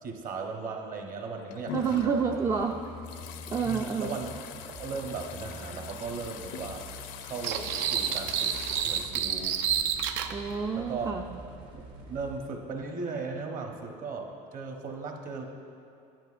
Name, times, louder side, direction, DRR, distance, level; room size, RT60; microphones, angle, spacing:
voice 1, 0.0-2.2 3.6-4.3 4.7-6.9 7.2-8.5 8.8-9.6 10.8-11.2 11.7-15.4, right 4 dB, 45° right, 2 dB, 1.1 m, -37 dB
sound 1, 1.2-9.1, left 9 dB, 65° left, 0.5 m, -43 dB
voice 2, 1.7-2.8 3.5-4.2 10.3-11.3, right 6 dB, 15° right, 3 dB, 0.3 m, -28 dB
sound 2, 1.9-12.3, equal, 90° right, 1.9 m, -46 dB
sound 3, 7.4-10.3, right 9 dB, 75° right, 0.5 m, -29 dB
10.5 x 9.1 x 2.5 m, 2.6 s
supercardioid pair, 105°, 20 cm